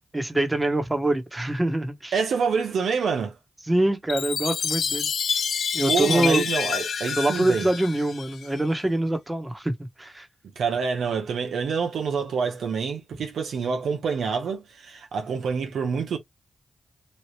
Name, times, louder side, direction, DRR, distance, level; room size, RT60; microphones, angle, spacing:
voice 1, 0.1-2.2 3.7-5.1 5.7-6.4 7.2-10.3, right 1 dB, 20° right, 1.2 m, -25 dB
voice 2, 2.1-3.4 5.8-7.7 10.6-16.2, right 6 dB, 85° right, 0.8 m, -27 dB
Chime, 4.1-8.6, left 7 dB, 75° left, 0.4 m, -28 dB
3.2 x 2.4 x 3.1 m
cardioid pair, 45°, 0 cm